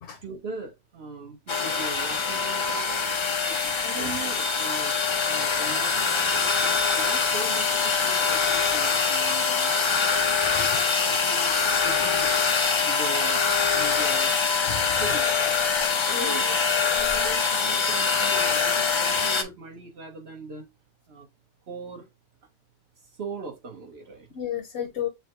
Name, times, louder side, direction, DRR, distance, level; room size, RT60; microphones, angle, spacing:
voice 1, 0.2-2.9 3.4-9.7 10.4-12.5 12.8-13.4 13.7-14.4 15.0-15.5 16.2-16.5 17.0-20.7 21.1-21.3 21.7-22.1 23.2-24.3 24.7-24.9, right 4 dB, 60° right, 1.5 m, -40 dB
sound 1, 1.5-19.4, left 5 dB, 50° left, 0.3 m, -24 dB
voice 2, 3.6-4.2 10.5-10.7 14.7-15.0 16.1-16.4 24.3-25.1, left 9 dB, 70° left, 1.1 m, -33 dB
6.4 x 2.3 x 3.1 m
omnidirectional pair, 1.2 m